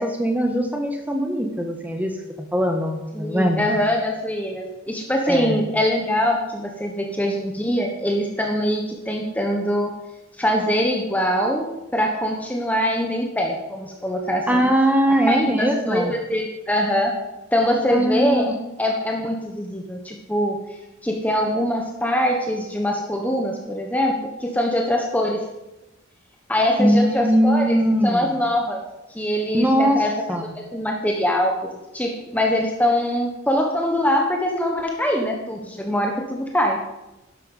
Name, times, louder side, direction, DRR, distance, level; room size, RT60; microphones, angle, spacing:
voice 1, 0.0-2.1 2.5-3.7 5.3-5.6 14.5-16.1 17.9-18.5 26.8-28.3 29.5-30.0 30.3-30.5, equal, 10° right, 4 dB, 1.6 m, -20 dB
voice 2, 3.1-9.9 10.4-14.7 15.1-17.2 17.5-18.5 18.8-20.6 21.0-25.4 26.5-27.8 28.0-28.8 29.1-30.2 30.5-31.6 31.9-36.8, equal, 10° left, 1 dB, 1.3 m, -23 dB
12.0 x 11.5 x 5.7 m, 1.0 s
head